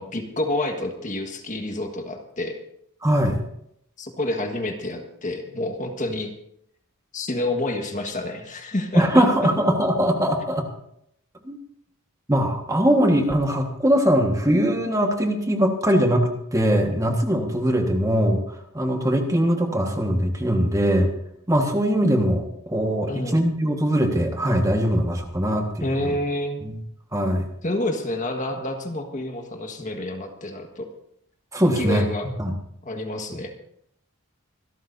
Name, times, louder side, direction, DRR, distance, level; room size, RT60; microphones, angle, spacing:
voice 1, 0.0-2.5 4.0-6.3 7.1-9.2 23.1-23.4 25.8-26.6 27.6-30.9 31.8-32.3 32.8-33.5, left 1 dB, 35° left, 4 dB, 1.6 m, -28 dB
voice 2, 3.0-3.4 8.9-10.6 11.4-11.6 12.3-21.1 21.5-26.1 26.6-26.8 27.1-27.4 31.5-32.0 32.4-32.5, equal, 15° right, 3 dB, 1.5 m, -21 dB
25.5 x 13.0 x 2.7 m, 0.73 s
head